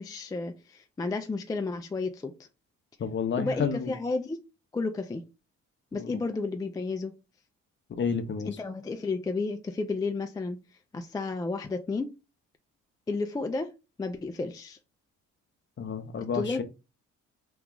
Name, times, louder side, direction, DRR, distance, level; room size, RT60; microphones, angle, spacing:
voice 1, 0.0-2.3 3.4-4.4 4.7-5.2 5.9-7.1 8.4-10.6 10.9-12.1 13.1-13.7 14.0-14.8 16.3-16.6, left 3 dB, 15° left, 0.3 m, -32 dB
voice 2, 3.0-3.9 5.9-6.0 8.0-8.5 15.8-16.6, left 6 dB, 40° left, 0.7 m, -30 dB
3.0 x 2.3 x 3.7 m
cardioid pair, 90°, 30 cm